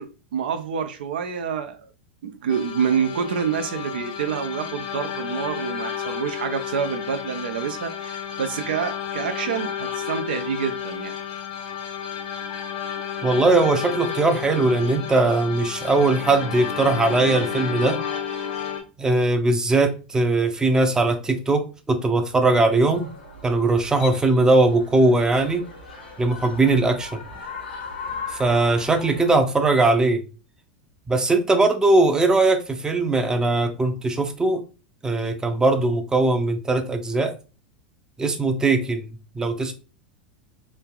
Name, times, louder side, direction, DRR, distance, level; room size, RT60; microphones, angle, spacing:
voice 1, 0.0-1.9 2.2-11.1, right 7 dB, 70° right, 0.3 m, -27 dB
sound 1, 2.5-18.8, left 8 dB, 60° left, 0.7 m, -31 dB
voice 2, 13.2-18.0 19.0-23.1 23.4-25.6 26.2-27.2 28.3-30.2 31.1-34.6 35.0-37.3 38.2-39.7, right 2 dB, 15° right, 0.5 m, -20 dB
sound 2, 22.9-29.3, left 5 dB, 90° left, 1.1 m, -38 dB
3.1 x 2.4 x 2.3 m
hypercardioid pair, 90°, 5 cm